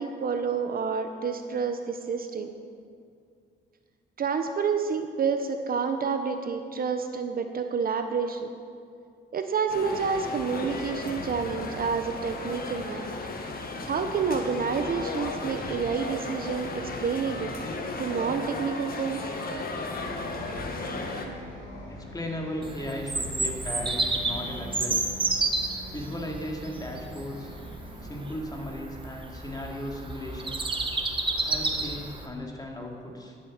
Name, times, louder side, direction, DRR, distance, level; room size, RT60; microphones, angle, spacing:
voice 1, 0.0-2.5 4.2-8.5 9.3-13.0 13.9-17.5 18.0-19.3, right 5 dB, 45° right, 7 dB, 0.8 m, -29 dB
sound 1, 9.7-21.3, left 3 dB, 50° left, 1.6 m, -35 dB
Bus, 19.8-28.2, equal, 90° left, 3.9 m, -43 dB
voice 2, 21.1-25.0 25.9-27.5 28.0-30.7 31.4-33.4, left 1 dB, 20° left, 0 dB, 2.4 m, -37 dB
Bird vocalization bird call bird song, 22.6-32.3, right 3 dB, 25° right, 1.4 m, -31 dB
11.5 x 8.2 x 7.4 m, 2.4 s
cardioid pair, 90°, 20 cm